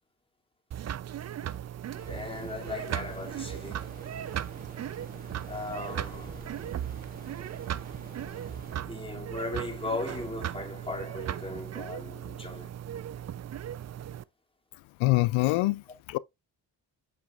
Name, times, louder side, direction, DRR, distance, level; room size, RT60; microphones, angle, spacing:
sound 1, 0.7-14.2, right 10 dB, 35° right, 0.4 m, -37 dB
sound 2, 1.9-8.8, right 1 dB, 20° right, 3.1 m, -48 dB
voice 1, 2.0-3.9 5.5-6.4 8.8-12.7, left 2 dB, 10° left, 2.5 m, -37 dB
voice 2, 15.0-16.2, left 20 dB, 85° left, 0.5 m, -25 dB
7.6 x 6.1 x 2.4 m
supercardioid pair, 60°, 46 cm